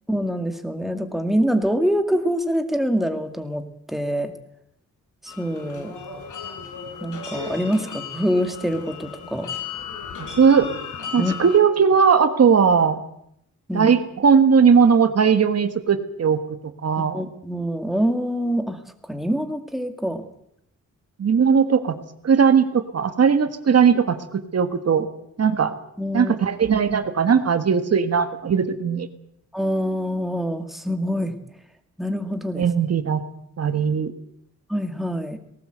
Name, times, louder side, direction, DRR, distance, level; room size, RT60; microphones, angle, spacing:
voice 1, 0.1-3.6 3.9-4.3 5.2-5.9 7.0-9.5 11.2-11.3 13.7-13.9 17.1-18.8 19.1-20.2 26.0-26.3 29.5-31.3 32.0-32.7 34.7-35.4, equal, ahead, 6 dB, 2.0 m, -25 dB
sound 1, 5.3-11.6, left 6 dB, 85° left, 4.2 m, -35 dB
voice 2, 10.2-10.7 11.1-13.0 13.7-16.4 16.8-17.2 21.2-22.0 22.2-25.1 25.4-25.7 26.1-29.1 32.6-33.2 33.6-34.1, right 6 dB, 55° right, 9 dB, 1.6 m, -18 dB
19.0 x 18.0 x 8.0 m, 0.73 s
wide cardioid pair, 155°, 30 cm